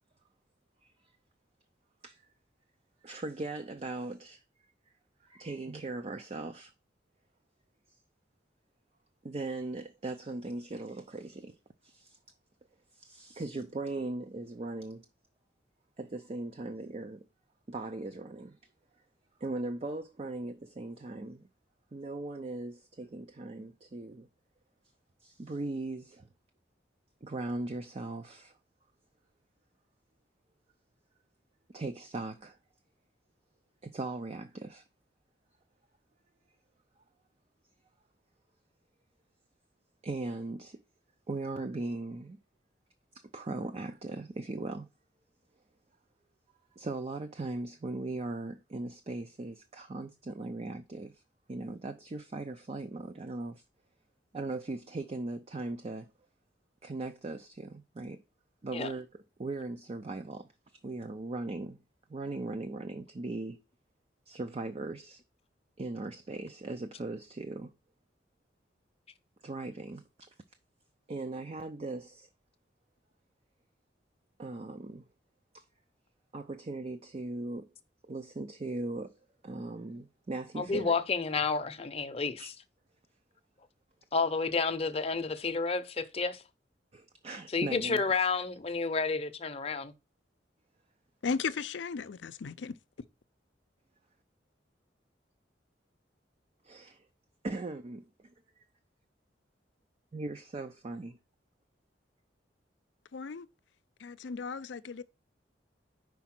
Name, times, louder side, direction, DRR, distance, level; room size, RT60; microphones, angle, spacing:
voice 1, 3.0-4.4 5.2-6.7 7.9-8.0 9.2-11.6 11.8-12.2 12.9-15.0 16.0-17.3 17.7-18.6 19.4-21.5 21.9-24.3 25.2-26.3 27.2-28.5 31.7-32.6 33.8-34.8 40.0-40.8 41.3-42.4 43.3-44.9 46.8-51.2 51.5-53.6 54.3-56.1 56.8-58.2 58.6-59.1 59.4-60.5 60.8-61.8 62.1-63.6 64.3-65.2 65.8-67.7 69.4-70.0 71.1-72.3 74.4-75.1 75.5-75.6 76.3-77.7 78.0-79.1 79.4-81.0 82.4-82.5 86.9-88.0 96.6-97.1 97.4-98.3 100.1-101.2, right 2 dB, 35° right, 0.5 m, -39 dB
voice 2, 80.6-82.5 84.1-86.4 87.5-89.9, left 4 dB, 35° left, 0.7 m, -30 dB
voice 3, 91.2-92.8 103.1-103.5 104.0-105.0, left 5 dB, 80° left, 0.5 m, -35 dB
5.1 x 4.7 x 5.8 m
head